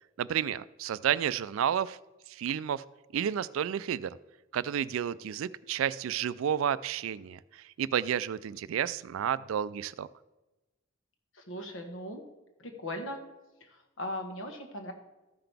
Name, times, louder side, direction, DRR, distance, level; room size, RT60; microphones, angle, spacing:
voice 1, 0.2-2.0 2.3-2.8 3.1-4.1 4.5-10.1, right 9 dB, 85° right, 18 dB, 0.3 m, -31 dB
voice 2, 11.3-12.2 12.6-13.2 13.6-14.9, left 1 dB, 75° left, 4 dB, 1.4 m, -39 dB
14.0 x 5.8 x 3.4 m, 1.1 s
head